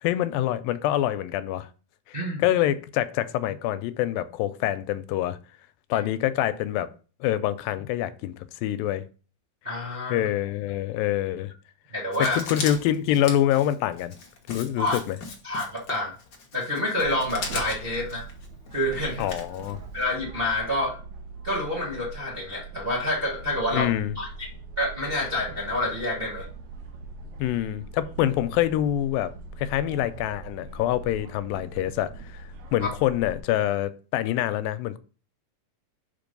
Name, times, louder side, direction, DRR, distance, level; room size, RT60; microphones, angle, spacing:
voice 1, 0.0-1.7 2.1-5.4 5.9-6.9 7.2-8.3 8.6-9.0 10.1-11.5 12.4-14.1 14.5-15.2 19.2-19.8 23.7-24.2 27.4-29.3 29.6-32.4 32.7-35.0, left 12 dB, 90° left, 2.3 m, -26 dB
voice 2, 2.1-2.4 5.9-6.0 9.6-10.3 11.9-12.4 14.8-15.0 15.4-16.1 16.5-18.3 18.7-19.3 19.9-21.0 21.4-23.9 24.1-24.5 24.8-26.5, left 1 dB, 80° right, 0.5 m, -28 dB
Writing, 12.1-20.1, left 4 dB, 60° left, 1.0 m, -38 dB
sound 1, 17.0-33.4, right 4 dB, 60° right, 2.2 m, -42 dB
5.9 x 5.0 x 5.2 m
omnidirectional pair, 4.0 m